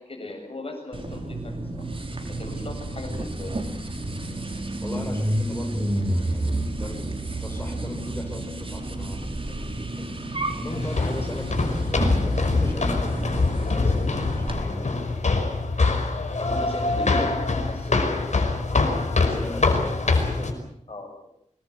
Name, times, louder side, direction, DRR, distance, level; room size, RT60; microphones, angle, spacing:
voice 1, 0.0-1.8 2.4-3.8 16.4-18.3 20.9-21.1, left 2 dB, 50° left, 4 dB, 7.5 m, -37 dB
sound 1, 0.9-14.6, right 1 dB, 45° right, 4.6 m, -30 dB
voice 2, 4.8-15.0 19.2-20.6, left 1 dB, 15° left, 3 dB, 6.4 m, -38 dB
sound 2, 10.7-20.5, left 3 dB, 70° left, 5.1 m, -24 dB
25.5 x 20.5 x 8.1 m, 0.72 s
wide cardioid pair, 70°, 13 cm